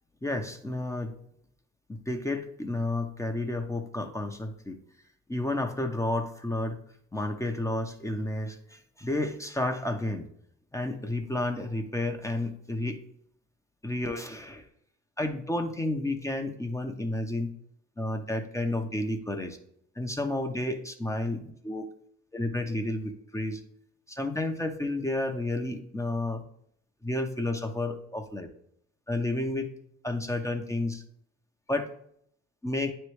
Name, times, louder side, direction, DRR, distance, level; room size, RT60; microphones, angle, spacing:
voice 1, 0.2-1.1 1.9-4.8 5.3-6.8 7.1-10.3 10.7-13.0 13.8-14.7 15.2-17.5 18.0-19.6 20.0-21.8 22.3-23.6 24.1-26.4 27.0-28.5 29.1-29.7 30.0-31.0 31.7-31.9 32.6-32.9, left 2 dB, 10° left, 4 dB, 0.7 m, -31 dB
9.2 x 3.2 x 3.1 m, 0.69 s
hypercardioid pair, 55°, 35 cm